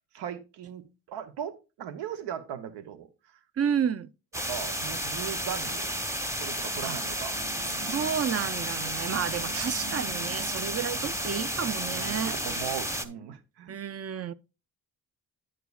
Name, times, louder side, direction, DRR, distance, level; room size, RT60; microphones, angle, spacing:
voice 1, 0.1-3.4 4.3-5.9 6.4-7.4 9.0-9.3 10.6-10.8 11.9-13.7, right 9 dB, 85° right, 0.9 m, -39 dB
voice 2, 3.6-4.1 6.8-7.0 7.8-12.3 13.7-14.3, right 8 dB, 40° right, 0.5 m, -31 dB
sound 1, 4.3-13.1, equal, 5° right, 0.9 m, -32 dB
sound 2, 6.9-13.3, right 5 dB, 65° right, 2.1 m, -47 dB
9.0 x 8.3 x 2.3 m
cardioid pair, 65°, 40 cm